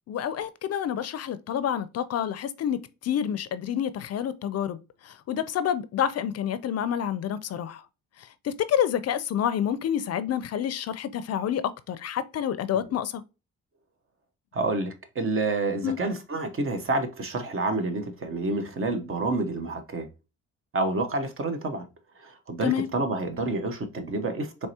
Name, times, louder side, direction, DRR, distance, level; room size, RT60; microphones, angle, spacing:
voice 1, 0.1-4.8 5.1-7.8 8.4-13.2 15.8-16.0 22.6-22.9, left 9 dB, 55° left, 0.5 m, -28 dB
voice 2, 14.5-20.1 20.7-21.8 22.2-24.7, right 2 dB, 45° right, 0.9 m, -28 dB
4.6 x 3.1 x 2.7 m
cardioid pair, 90°, 30 cm